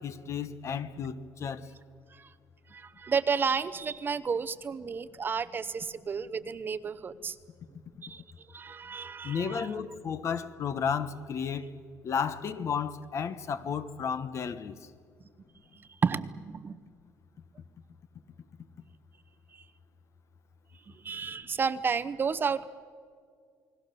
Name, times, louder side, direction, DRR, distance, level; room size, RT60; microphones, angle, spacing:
voice 1, 0.0-1.7 9.2-11.7 12.0-14.8, left 6 dB, 50° left, 1.2 m, -33 dB
voice 2, 2.7-7.4 8.0-8.2 8.5-9.7 15.8-16.8 19.5-19.6 20.9-22.7, right 5 dB, 35° right, 0.8 m, -32 dB
29.0 x 20.0 x 6.8 m
cardioid pair, 120°, 6 cm